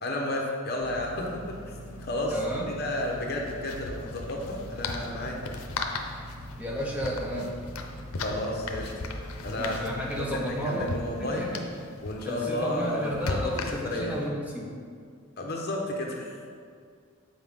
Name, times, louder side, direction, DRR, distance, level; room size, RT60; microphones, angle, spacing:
voice 1, 0.0-2.4 2.7-5.4 8.2-8.9 9.4-9.8 10.2-11.5 12.0-13.5 13.8-14.1 15.4-16.5, left 1 dB, 45° left, -1 dB, 1.0 m, -32 dB
sound 1, 0.8-10.5, equal, 10° left, 1.1 m, -43 dB
sound 2, 1.0-1.1 1.3-1.5 3.0-14.2, left 3 dB, 85° left, 0.6 m, -38 dB
voice 2, 2.3-2.8 6.6-7.6 9.5-10.9 11.2-11.6 12.2-14.7, right 1 dB, 5° right, -2 dB, 0.5 m, -32 dB
7.9 x 4.9 x 3.6 m, 2.2 s
head